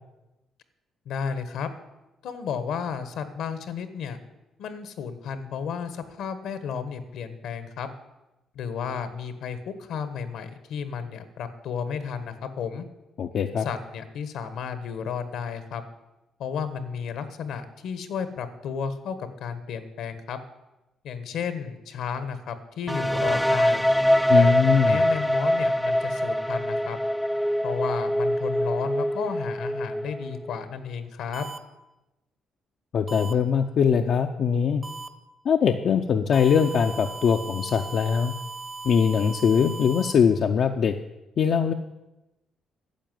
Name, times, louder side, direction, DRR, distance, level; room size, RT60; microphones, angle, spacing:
voice 1, 1.0-1.7 2.2-4.2 4.6-7.9 8.5-12.9 13.6-15.8 16.4-20.4 21.0-23.8 24.3-27.0 27.6-31.5, left 6 dB, 80° left, 11 dB, 1.3 m, -33 dB
voice 2, 13.2-13.7 24.3-25.0 32.9-34.8 35.4-38.3 38.8-40.9 41.4-41.7, left 7 dB, 60° left, 4 dB, 0.7 m, -22 dB
sound 1, 22.9-30.6, equal, ahead, 0.3 m, -24 dB
sound 2, 31.3-31.6 33.1-33.3 34.8-35.1 36.3-40.1, right 4 dB, 25° right, 1.1 m, -38 dB
10.5 x 7.0 x 9.3 m, 1.0 s
cardioid pair, 90°, 0 cm